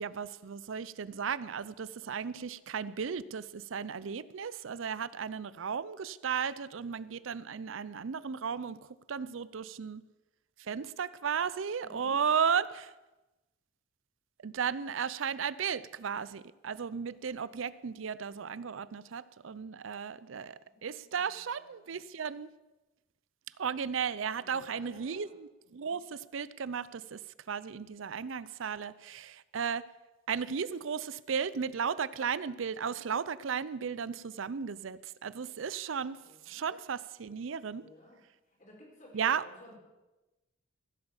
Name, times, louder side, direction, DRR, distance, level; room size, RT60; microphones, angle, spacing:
voice 1, 0.0-8.8 9.1-10.0 10.7-12.9 14.4-20.5 20.8-22.5 23.6-27.2 27.5-29.8 30.3-36.2 36.5-37.8 39.1-39.4, right 6 dB, 70° right, 18 dB, 0.5 m, -35 dB
voice 2, 11.8-12.2 20.6-21.9 24.4-25.3 25.6-26.0 36.2-36.7 37.2-37.5 37.7-38.2 38.5-39.8, left 1 dB, 40° left, -1 dB, 4.3 m, -56 dB
15.0 x 8.1 x 7.2 m, 1.1 s
head